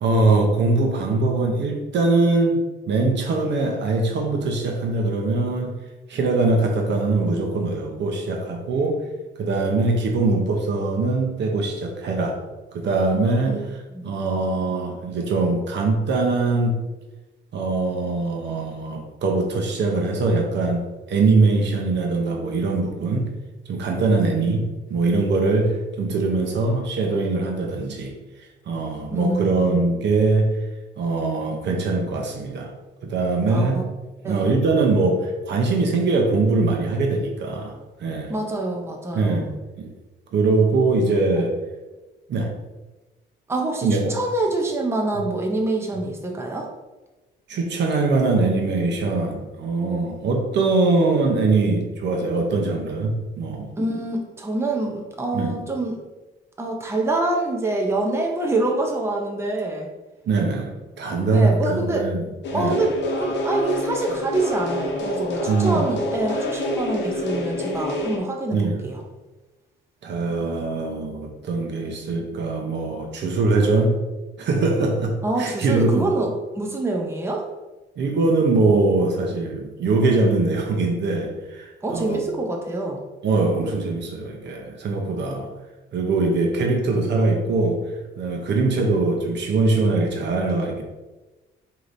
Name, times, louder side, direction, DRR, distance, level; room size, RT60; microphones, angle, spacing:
voice 1, 0.0-2.6 2.9-5.7 6.1-9.0 9.4-12.4 12.7-13.6 14.0-16.8 17.5-23.3 23.7-24.6 24.9-28.1 28.7-30.5 31.0-32.7 33.0-33.8 34.2-37.7 38.0-38.3 39.1-39.4 39.8-39.9 40.3-41.5 42.3-42.5 43.8-44.2 47.5-53.7 55.3-55.5 60.3-62.2 62.5-62.8 65.5-65.9 68.5-68.8 70.0-74.0 74.4-75.1 75.4-76.0 78.0-82.2 83.2-85.5 85.9-87.8 88.2-90.8, right 3 dB, 60° right, 1 dB, 0.8 m, -22 dB
voice 2, 29.1-29.8 33.5-33.8 34.2-34.4 38.3-39.5 43.5-46.7 53.8-56.0 56.6-59.9 61.3-62.1 62.5-69.0 75.2-77.5 81.8-83.0, right 2 dB, 15° right, 1 dB, 0.6 m, -26 dB
sound 1, 62.4-68.2, left 1 dB, 65° left, 0.8 m, -27 dB
4.7 x 2.8 x 2.6 m, 1.1 s
cardioid pair, 90°, 20 cm